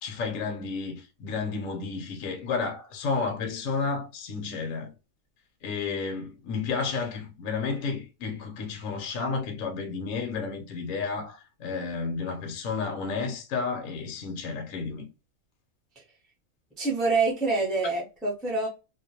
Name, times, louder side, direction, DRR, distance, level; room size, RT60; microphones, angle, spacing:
voice 1, 0.0-4.9 5.6-15.1, left 4 dB, 70° left, 0.9 m, -31 dB
voice 2, 16.8-18.7, right 3 dB, ahead, 0.3 m, -26 dB
2.4 x 2.1 x 2.6 m
omnidirectional pair, 1.5 m